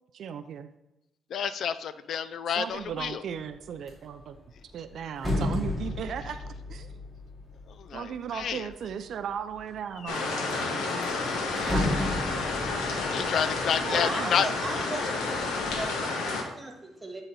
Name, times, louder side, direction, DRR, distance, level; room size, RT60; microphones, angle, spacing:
voice 1, 0.1-0.7 2.6-4.4 4.7-6.4 6.7-6.9 7.9-10.8 11.5-12.6 13.6-14.5, right 8 dB, 65° right, 9 dB, 0.4 m, -37 dB
voice 2, 1.3-3.2 7.8-8.7 11.6-11.7 13.0-14.5, left 8 dB, 65° left, 14 dB, 0.3 m, -29 dB
sound 1, 2.8-3.1 3.5-8.9 9.5-10.2 10.5-10.6 10.9-14.8 15.2-15.8, left 2 dB, 15° left, 2.5 m, -34 dB
sound 2, 10.1-16.4, left 3 dB, 85° left, 1.1 m, -30 dB
voice 3, 13.7-15.5 15.7-17.2, right 2 dB, 20° right, 2 dB, 1.5 m, -38 dB
9.2 x 3.9 x 4.1 m, 0.91 s
cardioid pair, 90°, 0 cm